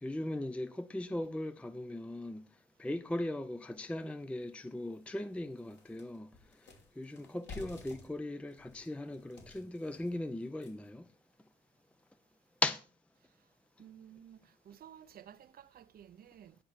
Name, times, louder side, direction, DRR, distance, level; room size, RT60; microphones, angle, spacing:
voice 1, 0.0-2.4 2.8-6.3 7.0-11.1 12.6-12.8, left 1 dB, 5° left, 0.4 m, -38 dB
sound 1, 3.8-3.9 4.4-4.5 4.9-11.0, left 4 dB, 65° left, 3.1 m, -53 dB
voice 2, 13.8-16.6, right 9 dB, 50° right, 0.6 m, -54 dB
10.0 x 5.1 x 4.4 m
cardioid pair, 90°, 20 cm